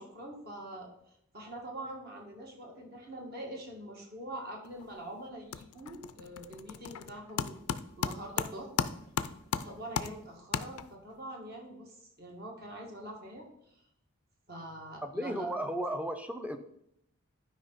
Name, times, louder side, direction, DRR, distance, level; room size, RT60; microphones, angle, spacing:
voice 1, 0.0-7.6 8.0-8.8 9.5-13.8 14.5-15.5, right 1 dB, 45° right, 0 dB, 2.0 m, -44 dB
sound 1, 4.6-5.0 5.3-11.2, left 7 dB, 90° left, 0.5 m, -36 dB
voice 2, 15.0-16.6, right 1 dB, 5° right, 8 dB, 0.6 m, -34 dB
11.5 x 5.1 x 4.2 m, 0.76 s
head